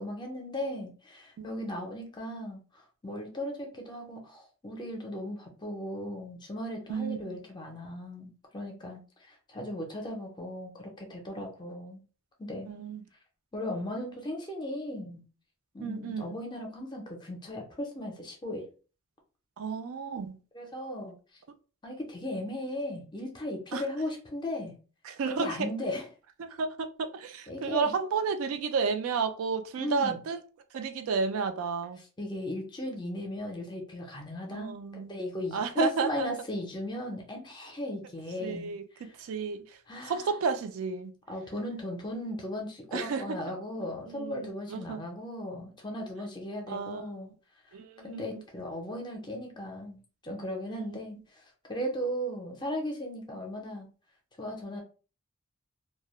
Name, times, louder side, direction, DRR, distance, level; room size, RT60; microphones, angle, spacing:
voice 1, 0.0-12.0 12.4-12.7 13.5-15.2 15.7-18.7 20.5-21.1 21.8-24.8 25.3-26.1 27.5-27.9 29.8-30.2 32.2-39.1 39.9-40.3 41.3-47.3 48.0-53.9 54.4-54.8, left 1 dB, 20° left, 0.5 m, -37 dB
voice 2, 6.9-7.4 12.7-13.1 15.8-16.4 19.6-20.4 23.7-23.8 25.0-25.7 26.4-30.4 30.7-32.0 34.5-35.1 35.5-36.3 38.4-39.8 40.1-41.1 42.9-43.4 44.1-45.0 46.7-47.1 47.7-48.4 50.7-51.0, right 5 dB, 75° right, 0.3 m, -32 dB
2.2 x 2.0 x 2.9 m
head